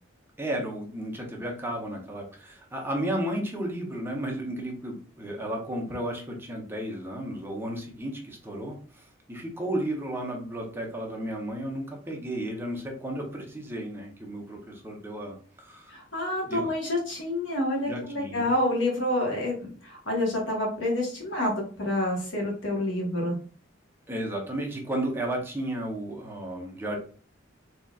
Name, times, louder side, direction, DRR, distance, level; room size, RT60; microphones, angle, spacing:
voice 1, 0.4-16.0 16.4-16.7 17.9-18.5 24.1-27.0, right 1 dB, 10° right, 0 dB, 0.9 m, -33 dB
voice 2, 15.9-19.5 19.8-23.4, left 1 dB, 75° left, -1 dB, 1.4 m, -28 dB
3.9 x 3.0 x 2.4 m, 0.41 s
head